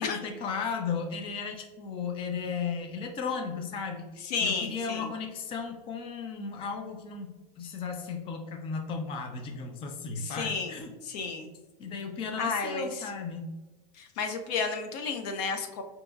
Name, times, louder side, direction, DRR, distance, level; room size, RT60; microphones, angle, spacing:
voice 1, 0.0-10.9 11.8-13.5, left 5 dB, 25° left, 4 dB, 0.5 m, -35 dB
voice 2, 4.2-5.1 10.2-10.8 11.0-11.5 12.4-13.1 13.9-15.8, left 5 dB, 80° left, 5 dB, 0.7 m, -32 dB
5.2 x 2.9 x 2.3 m, 1.2 s
supercardioid pair, 155°, 20 cm